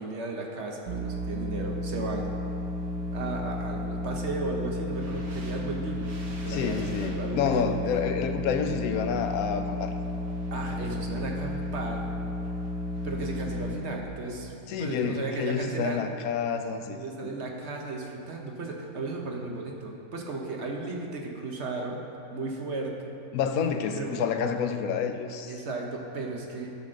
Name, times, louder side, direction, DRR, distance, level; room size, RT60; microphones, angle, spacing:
voice 1, 0.0-2.3 3.1-6.1 6.4-7.7 8.7-8.8 10.5-12.1 13.0-14.5 14.8-16.0 16.9-22.0 22.3-23.2 23.9-24.1 25.4-26.7, right 3 dB, 55° right, 0 dB, 1.2 m, -35 dB
sound 1, 0.9-13.8, left 1 dB, 85° right, 1.6 m, -33 dB
voice 2, 6.5-9.9 14.7-17.3 23.3-25.5, left 6 dB, 80° left, 7 dB, 1.1 m, -29 dB
12.5 x 4.2 x 6.3 m, 2.6 s
omnidirectional pair, 1.5 m